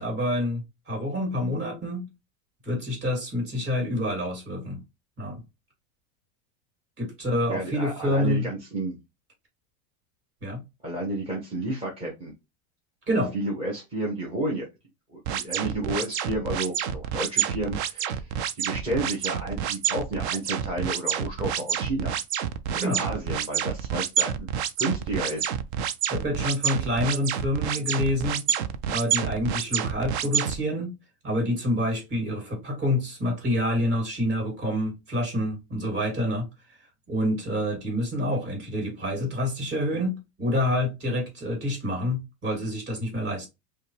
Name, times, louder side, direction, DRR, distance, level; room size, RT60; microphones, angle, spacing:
voice 1, 0.0-2.1 2.6-4.8 5.2-5.4 7.0-8.5 10.4-10.6 13.1-13.3 22.7-23.0 26.1-28.4 28.9-30.9 31.2-36.8 37.1-43.5, left 1 dB, 30° right, 2.7 m, -27 dB
voice 2, 7.5-9.0 10.8-12.3 13.3-14.7 15.1-22.2 22.7-24.5 24.8-25.6, right 1 dB, 15° right, 0.9 m, -31 dB
sound 1, 15.3-30.6, right 8 dB, 50° right, 0.5 m, -28 dB
5.4 x 2.3 x 3.3 m
supercardioid pair, 165°, 43 cm